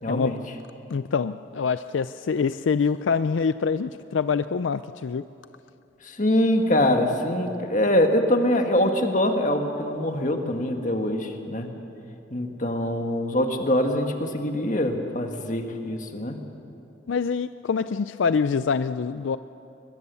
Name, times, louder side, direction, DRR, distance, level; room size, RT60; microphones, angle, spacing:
voice 1, 0.0-0.4 6.0-11.7 12.3-16.4, left 1 dB, 40° left, 4 dB, 1.8 m, -24 dB
voice 2, 0.9-5.2 17.1-19.4, left 5 dB, 85° left, 13 dB, 0.4 m, -25 dB
22.5 x 21.5 x 7.0 m, 2.7 s
head